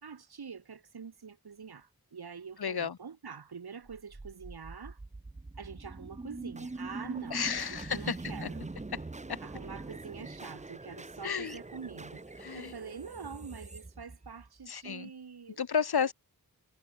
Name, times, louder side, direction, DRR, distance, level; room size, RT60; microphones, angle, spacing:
voice 1, 0.0-5.0 5.6-8.7 9.4-12.2 12.5-15.6, right 6 dB, 85° right, 1.7 m, -45 dB
voice 2, 2.6-3.0 7.3-8.2 8.4-8.5 8.9-9.0 9.3-9.4 11.2-11.6 12.4-12.7 14.7-15.1 15.6-16.1, left 7 dB, 90° left, 1.2 m, -32 dB
sound 1, 3.8-14.9, right 2 dB, 20° right, 0.8 m, -43 dB
wide cardioid pair, 80°, 37 cm